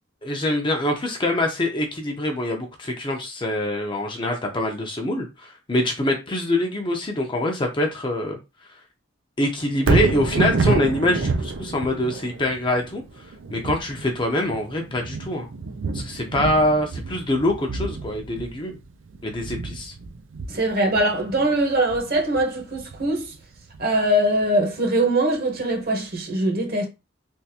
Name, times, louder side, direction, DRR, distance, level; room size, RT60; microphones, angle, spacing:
voice 1, 0.2-8.4 9.4-13.0 13.5-15.5 15.9-18.8 19.2-19.9, left 1 dB, 25° left, 0.6 m, -24 dB
Thunder, 9.7-24.0 24.4-24.5, right 3 dB, 80° right, 0.5 m, -28 dB
voice 2, 20.5-23.3 23.8-26.9, right 1 dB, 50° right, 1.1 m, -22 dB
3.5 x 2.5 x 2.8 m
head